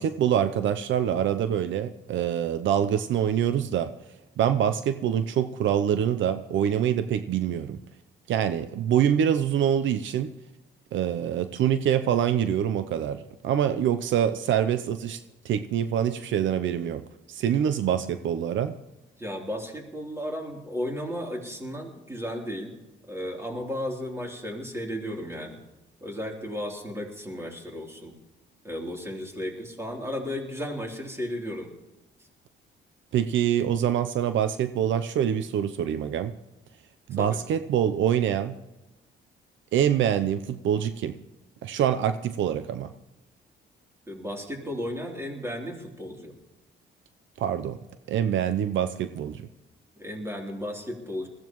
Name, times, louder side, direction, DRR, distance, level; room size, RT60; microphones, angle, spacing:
voice 1, 0.0-3.9 4.4-7.8 8.3-10.3 10.9-15.2 15.4-17.0 17.3-18.7 33.1-36.3 37.1-38.6 39.7-41.1 41.6-42.9 47.4-47.8 48.1-49.4, right 9 dB, 75° right, 11 dB, 0.7 m, -25 dB
voice 2, 19.2-22.8 23.1-25.6 26.0-28.2 28.6-31.7 37.1-37.4 44.1-46.4 50.0-51.3, equal, 15° right, 0 dB, 3.3 m, -34 dB
21.0 x 15.5 x 3.1 m, 0.99 s
cardioid pair, 90°, 20 cm